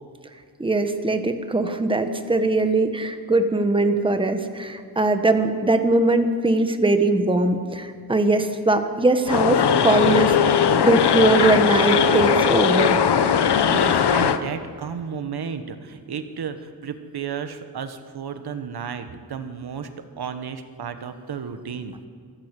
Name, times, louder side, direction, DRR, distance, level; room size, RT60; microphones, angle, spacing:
voice 1, 0.6-10.3 10.7-13.0, right 2 dB, 15° right, 7 dB, 1.3 m, -21 dB
sound 1, 9.3-14.4, left 7 dB, 85° left, 1.1 m, -19 dB
voice 2, 13.7-22.0, right 6 dB, 70° right, 9 dB, 1.4 m, -33 dB
26.0 x 13.5 x 8.3 m, 2.1 s
wide cardioid pair, 135°, 39 cm